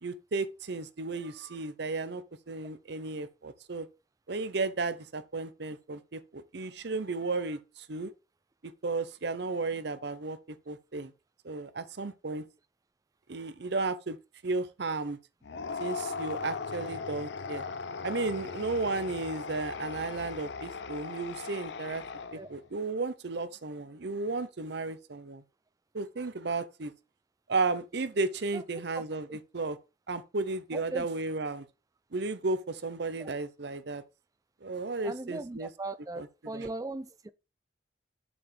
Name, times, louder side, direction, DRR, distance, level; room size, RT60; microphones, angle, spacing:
voice 1, 0.0-3.9 4.3-8.1 8.6-11.1 11.4-12.5 13.3-14.2 14.4-15.2 15.8-17.6 18.0-22.0 22.3-25.4 25.9-26.9 27.5-29.8 30.1-31.7 32.1-34.0 34.6-35.7 36.2-36.3 36.5-36.7, right 3 dB, 60° right, 0.7 m, -34 dB
sound 1, 15.4-22.6, left 4 dB, 60° left, 0.5 m, -38 dB
voice 2, 30.7-31.1 33.2-33.3 35.0-37.3, right 2 dB, 20° right, 0.4 m, -38 dB
7.0 x 7.0 x 3.3 m
head